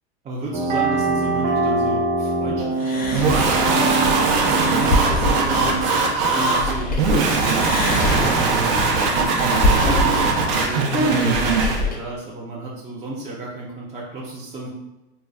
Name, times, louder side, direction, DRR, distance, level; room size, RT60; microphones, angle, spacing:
voice 1, 0.2-5.8 6.3-8.6 9.0-14.7, right 2 dB, 20° right, -5 dB, 0.6 m, -32 dB
sound 1, 0.5-6.1, right 2 dB, 45° right, 1.2 m, -24 dB
sound 2, 2.8-7.2 7.5-12.0, left 2 dB, 25° left, 0.6 m, -25 dB
sound 3, 3.1-11.8, right 4 dB, 60° right, 0.8 m, -20 dB
4.1 x 2.2 x 2.3 m, 0.99 s
supercardioid pair, 110°, 34 cm